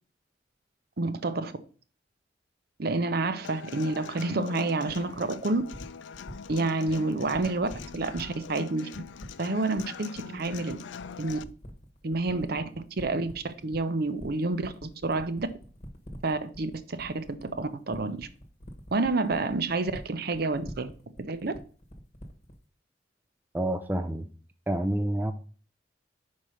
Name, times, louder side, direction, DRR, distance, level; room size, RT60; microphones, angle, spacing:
voice 1, 1.0-1.5 2.8-5.6 6.5-8.9 9.4-10.8 11.2-11.4 12.0-12.7 13.0-15.5 16.2-18.3 18.9-20.9 21.2-21.5, right 3 dB, 60° right, 0.7 m, -29 dB
Human voice / Acoustic guitar, 3.4-11.4, left 6 dB, 85° left, 0.4 m, -43 dB
sound 1, 4.9-22.6, equal, 40° left, 1.1 m, -45 dB
voice 2, 23.5-24.3 24.7-25.3, right 1 dB, 10° right, 0.5 m, -28 dB
5.2 x 4.8 x 5.7 m
head